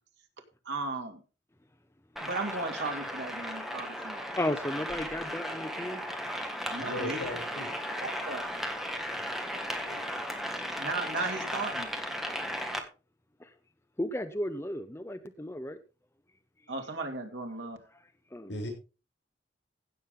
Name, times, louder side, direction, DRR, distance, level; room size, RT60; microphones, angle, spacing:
voice 1, 0.7-1.2 2.2-4.4 6.7-7.2 8.0-8.5 10.8-11.9 16.7-17.8, right 3 dB, 85° right, 2.4 m, -36 dB
sound 1, 2.2-12.8, equal, ahead, 1.7 m, -36 dB
voice 2, 4.4-6.0 13.4-13.5 14.0-15.8 18.3-18.5, left 1 dB, 15° left, 0.7 m, -34 dB
voice 3, 6.8-7.7 8.9-9.3 9.8-10.3 18.5-18.7, left 1 dB, 80° left, 7.2 m, -39 dB
16.0 x 7.4 x 3.7 m
head